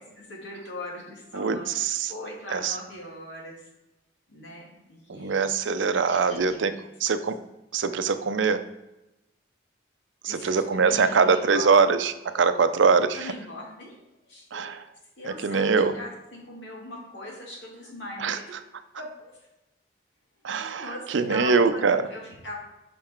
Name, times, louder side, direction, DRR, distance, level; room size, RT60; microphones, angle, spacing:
voice 1, 0.2-1.7 2.1-3.6 4.3-5.4 6.2-6.7 10.2-11.7 13.1-14.8 15.2-18.5 19.0-19.5 20.6-22.6, left 1 dB, 75° left, -3 dB, 2.3 m, -40 dB
voice 2, 1.3-2.1 2.5-2.8 5.1-6.7 7.0-7.4 7.7-8.6 10.2-13.3 14.5-14.8 15.2-15.9 18.2-18.4 20.4-22.0, right 5 dB, 85° right, 10 dB, 0.5 m, -23 dB
sound 1, 6.0-6.6, left 1 dB, 30° left, 2.6 m, -47 dB
5.8 x 5.3 x 4.4 m, 0.95 s
head